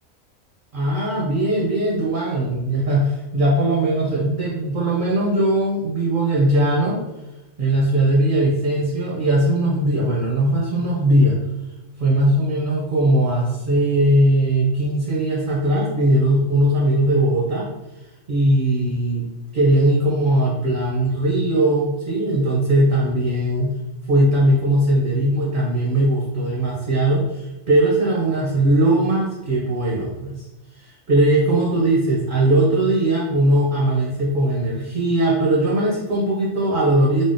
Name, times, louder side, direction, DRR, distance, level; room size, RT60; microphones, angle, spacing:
voice 1, 0.7-7.0 7.6-11.4 12.0-17.7 18.3-19.2 19.5-23.7 24.1-30.4 30.8-37.2, right 1 dB, 60° right, -4 dB, 0.5 m, -19 dB
3.6 x 2.0 x 2.5 m, 0.99 s
omnidirectional pair, 1.4 m